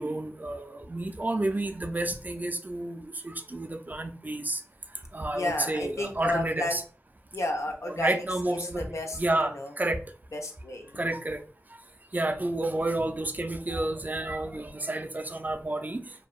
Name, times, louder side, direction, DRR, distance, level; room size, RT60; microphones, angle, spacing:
voice 1, 0.0-4.6 5.1-6.8 8.0-8.8 9.1-10.0 11.0-11.4 12.1-16.0, right 2 dB, 35° right, 6 dB, 0.4 m, -30 dB
voice 2, 5.3-6.8 7.3-9.7 10.3-11.0, left 2 dB, 70° left, 3 dB, 0.5 m, -32 dB
2.7 x 2.2 x 2.3 m, 0.40 s
wide cardioid pair, 40°, 5 cm